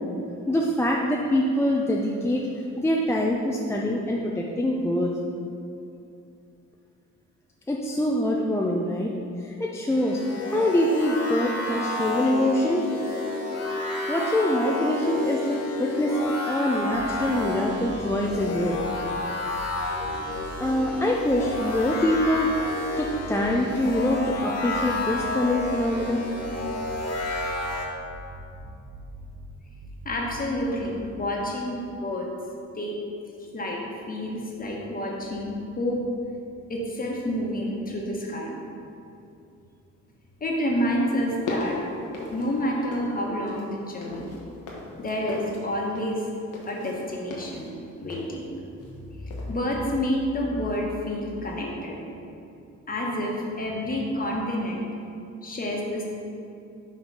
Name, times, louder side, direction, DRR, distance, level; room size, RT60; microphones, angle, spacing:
voice 1, 0.5-2.5 2.8-5.1 7.7-10.2 10.5-12.9 13.5-13.7 14.1-18.8 20.6-22.6 23.0-26.2, left 1 dB, 10° left, -2 dB, 0.4 m, -24 dB
sound 1, 9.9-27.9, left 2 dB, 55° left, 1.1 m, -31 dB
sound 2, 16.7-17.5 17.8-19.2 19.5-20.9 21.2-22.6 23.0-24.3 24.7-26.1 26.4-27.8 28.1-29.5 29.8-30.5, right 2 dB, 80° right, 0.8 m, -42 dB
voice 2, 30.0-32.3 32.7-33.0 33.5-36.0 36.7-38.6 40.4-41.8 42.3-44.2 45.0-46.3 46.7-47.7 48.0-48.4 48.8-52.0 52.9-54.8 55.4-56.0, left 1 dB, 30° left, -2 dB, 1.2 m, -29 dB
sound 3, 41.2-43.2 43.5-49.0 49.3-49.5, left 2 dB, 85° left, 1.1 m, -38 dB
5.9 x 3.3 x 5.5 m, 2.7 s
cardioid pair, 90°, 30 cm